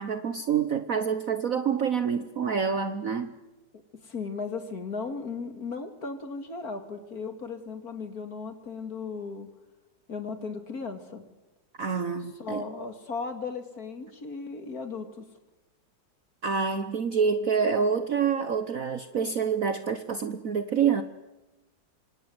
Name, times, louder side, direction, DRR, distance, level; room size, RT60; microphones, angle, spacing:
voice 1, 0.0-3.4 11.8-12.6 16.4-21.0, right 6 dB, 50° right, 10 dB, 1.3 m, -27 dB
voice 2, 4.0-9.5 10.1-11.2 12.4-15.3, left 4 dB, 50° left, 7 dB, 2.8 m, -36 dB
26.0 x 26.0 x 7.9 m, 1.1 s
omnidirectional pair, 2.0 m